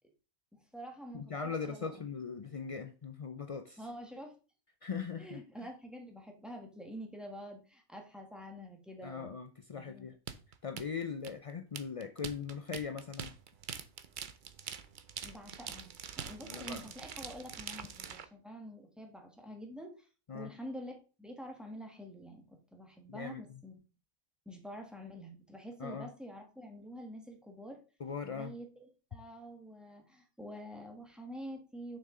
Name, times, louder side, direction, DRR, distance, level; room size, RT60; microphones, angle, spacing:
voice 1, 0.5-1.9 3.8-4.3 5.2-9.4 9.7-10.1 15.2-20.1 20.3-20.9 21.2-23.7 24.4-27.8 28.3-32.0, equal, ahead, 2 dB, 1.5 m, -47 dB
voice 2, 1.1-3.8 4.8-5.4 9.0-10.2 10.6-13.3 16.4-16.9 20.3-20.5 23.1-23.6 25.8-26.1 28.0-28.6, left 6 dB, 60° left, 7 dB, 0.3 m, -40 dB
sound 1, 10.3-18.2, right 7 dB, 50° right, 0.6 m, -44 dB
6.5 x 6.0 x 3.8 m, 0.35 s
omnidirectional pair, 1.4 m